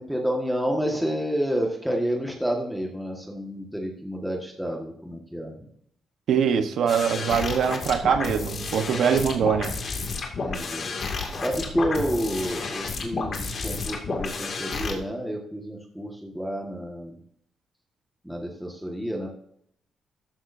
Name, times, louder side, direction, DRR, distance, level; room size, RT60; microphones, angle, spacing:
voice 1, 0.0-5.7 10.4-10.9 11.3-17.2 18.2-19.3, equal, ahead, -1 dB, 1.6 m, -29 dB
voice 2, 6.3-9.8, right 7 dB, 70° right, 9 dB, 1.1 m, -23 dB
sound 1, 6.9-14.9, left 4 dB, 45° left, 2.3 m, -31 dB
14.0 x 11.0 x 2.7 m, 0.69 s
cardioid pair, 140°, 0 cm